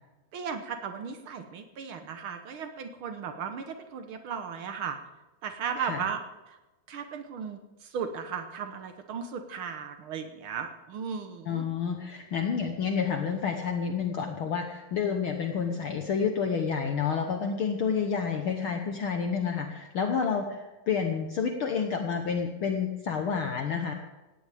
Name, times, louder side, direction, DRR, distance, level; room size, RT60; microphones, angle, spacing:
voice 1, 0.3-5.0 5.4-6.2 6.5-6.6 6.9-11.6, right 6 dB, 85° right, 6 dB, 1.1 m, -36 dB
voice 2, 5.8-6.1 11.5-23.9, left 6 dB, 70° left, 4 dB, 1.2 m, -29 dB
18.5 x 16.5 x 3.5 m, 1.1 s
omnidirectional pair, 3.9 m